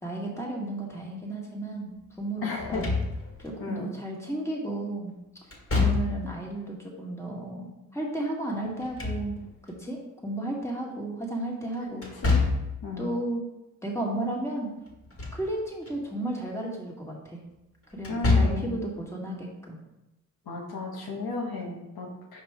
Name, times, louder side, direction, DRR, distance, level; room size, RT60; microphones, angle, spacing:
voice 1, 0.0-1.9 2.2-2.9 3.4-5.1 5.7-12.1 13.0-13.4 13.8-14.7 15.3-17.4 17.9-19.8, right 1 dB, 5° left, -2 dB, 1.8 m, -33 dB
voice 2, 2.4-2.8 3.6-3.9 12.2-12.4 12.8-13.1 18.1-18.7 20.5-22.4, left 3 dB, 80° left, -2 dB, 1.3 m, -33 dB
Slam / Thump thud, 2.6-3.5 5.5-6.4 8.6-9.7 12.0-12.8 14.9-15.5 15.9-16.0 18.0-18.8, left 3 dB, 40° left, 1.8 m, -26 dB
5.3 x 4.9 x 3.6 m, 0.95 s
cardioid pair, 45°, 36 cm